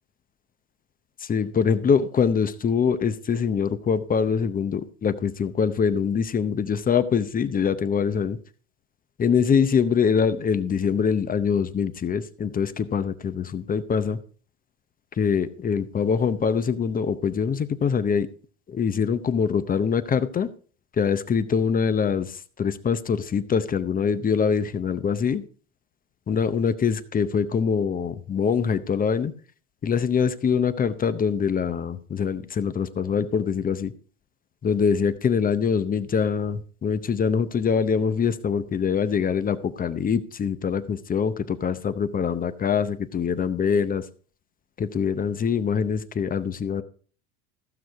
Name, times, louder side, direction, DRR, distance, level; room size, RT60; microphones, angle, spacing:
voice 1, 1.2-8.4 9.2-14.2 15.2-18.3 18.7-20.5 21.0-25.4 26.3-29.3 29.8-33.9 34.6-44.1 44.8-46.8, left 6 dB, 20° left, 12 dB, 0.7 m, -24 dB
15.0 x 6.3 x 4.6 m, 0.41 s
supercardioid pair, 110°, 44 cm